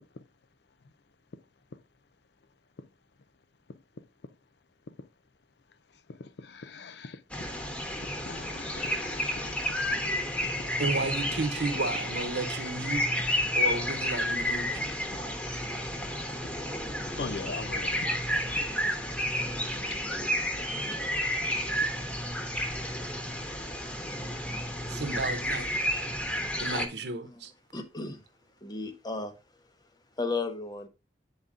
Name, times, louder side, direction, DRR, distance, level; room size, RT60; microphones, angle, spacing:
voice 1, 6.2-7.2 8.3-9.6 17.2-18.6 19.8-20.8, left 4 dB, 70° left, 0.5 m, -41 dB
sound 1, 7.3-26.9, equal, 5° left, 1.1 m, -31 dB
voice 2, 10.8-13.1 13.5-14.9 24.9-25.7 26.6-27.5, right 3 dB, 70° right, 0.9 m, -33 dB
voice 3, 27.7-28.2 28.6-29.3 30.2-30.9, left 3 dB, 25° left, 0.8 m, -34 dB
8.6 x 4.0 x 3.6 m
head